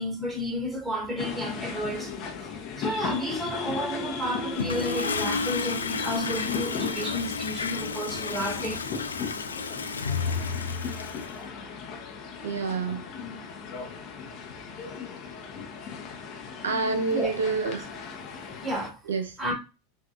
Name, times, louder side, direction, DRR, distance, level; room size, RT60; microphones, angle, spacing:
voice 1, 0.0-2.1 2.8-8.8 17.1-17.3 17.6-17.7 18.6-19.0 19.4-19.5, equal, 15° right, 2.3 m, -31 dB
sound 1, 1.2-18.9, left 5 dB, 50° left, 1.1 m, -37 dB
Toilet flush, 4.5-11.4, left 5 dB, 90° left, 0.4 m, -32 dB
voice 2, 12.4-13.0 16.6-17.9 19.1-19.3, right 4 dB, 85° right, 1.0 m, -27 dB
5.8 x 2.7 x 2.6 m
hypercardioid pair, 90°, 0 cm